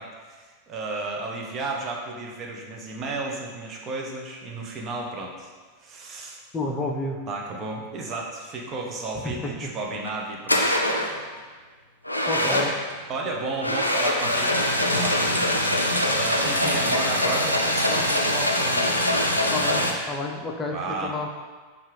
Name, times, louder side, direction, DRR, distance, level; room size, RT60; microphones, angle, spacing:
voice 1, 0.0-5.5 5.8-6.4 7.3-10.8 12.4-12.7 13.1-15.8 16.1-19.9 20.7-21.1, right 3 dB, 30° right, 0 dB, 0.6 m, -33 dB
voice 2, 6.5-7.3 9.2-9.7 12.3-12.7 19.5-21.3, left 2 dB, 20° left, 1 dB, 0.4 m, -30 dB
sound 1, 9.9-10.1 10.5-11.2 12.0-12.9 13.6-19.9, left 1 dB, 85° left, 0.4 m, -23 dB
5.3 x 2.4 x 3.3 m, 1.4 s
figure-of-eight pair, 90°, 0 cm